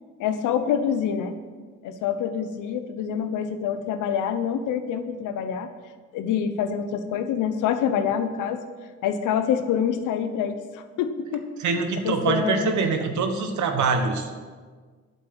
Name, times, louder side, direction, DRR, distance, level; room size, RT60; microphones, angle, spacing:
voice 1, 0.2-1.3 1.8-5.7 6.1-8.6 9.0-11.5 12.0-12.7, left 8 dB, 90° left, 9 dB, 0.9 m, -26 dB
voice 2, 11.6-14.3, right 4 dB, 70° right, 6 dB, 1.4 m, -24 dB
8.5 x 7.4 x 7.4 m, 1.5 s
cardioid pair, 90°, 30 cm